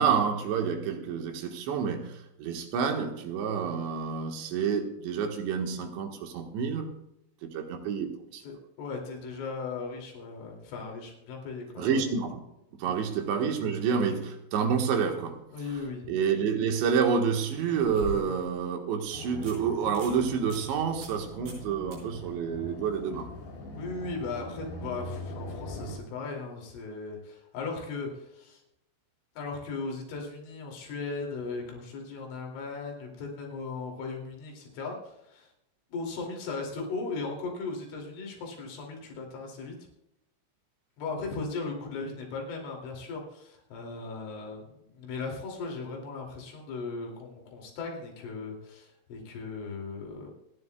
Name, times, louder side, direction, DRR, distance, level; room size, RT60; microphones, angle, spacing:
voice 1, 0.0-7.0 7.4-8.4 11.8-12.4 12.7-15.4 16.1-23.3, right 6 dB, 75° right, 3.5 m, -28 dB
voice 2, 8.4-12.0 12.8-13.1 15.5-16.1 23.7-28.6 29.4-35.5 35.9-39.8 41.0-50.3, left 4 dB, 90° left, 5.1 m, -37 dB
sound 1, 15.8-15.9 17.3-18.6 19.0-19.1 19.4-19.6 19.9-20.2 20.5-20.6 21.0-21.2 21.5-21.7 21.9-22.0 25.1-25.2, right 1 dB, 55° right, 7.3 m, -41 dB
sound 2, 19.1-26.0, left 1 dB, 60° left, 4.8 m, -42 dB
28.0 x 10.5 x 2.3 m
omnidirectional pair, 5.4 m